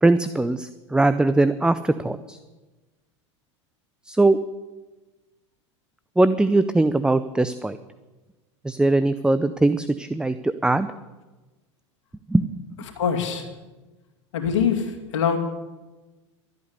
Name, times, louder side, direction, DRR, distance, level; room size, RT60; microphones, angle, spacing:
voice 1, 0.0-2.4 4.1-4.4 6.2-7.8 8.6-10.9 12.3-12.4, right 2 dB, 5° right, 13 dB, 0.5 m, -20 dB
voice 2, 13.0-13.4 14.3-15.4, left 7 dB, 75° left, 4 dB, 2.4 m, -23 dB
12.5 x 8.5 x 9.6 m, 1.2 s
hypercardioid pair, 95°, 16 cm